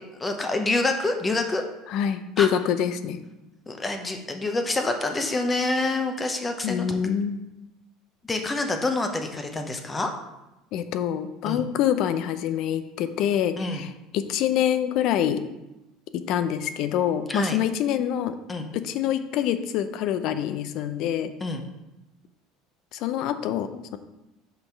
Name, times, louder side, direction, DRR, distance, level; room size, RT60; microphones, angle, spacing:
voice 1, 0.0-1.6 2.4-2.5 3.7-6.9 8.3-10.1 11.4-11.6 13.6-13.8 17.3-17.6 18.5-18.7 21.4-21.6, left 2 dB, 20° left, 5 dB, 0.8 m, -27 dB
voice 2, 1.9-3.2 6.6-7.4 10.7-15.4 16.1-18.4 18.7-21.3 22.9-24.0, left 9 dB, 60° left, 11 dB, 0.5 m, -26 dB
5.5 x 4.3 x 4.5 m, 0.96 s
hypercardioid pair, 80°, 0 cm